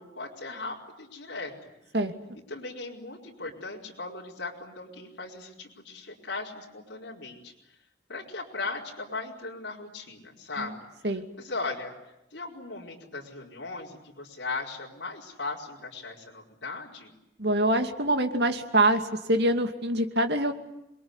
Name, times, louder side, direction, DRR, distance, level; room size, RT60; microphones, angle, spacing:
voice 1, 0.0-1.7 2.3-7.5 8.1-10.8 11.4-11.9 12.3-17.1, left 3 dB, 80° left, -3 dB, 4.9 m, -38 dB
voice 2, 17.4-20.5, right 1 dB, 65° right, 6 dB, 2.6 m, -25 dB
27.5 x 22.0 x 9.8 m, 0.88 s
head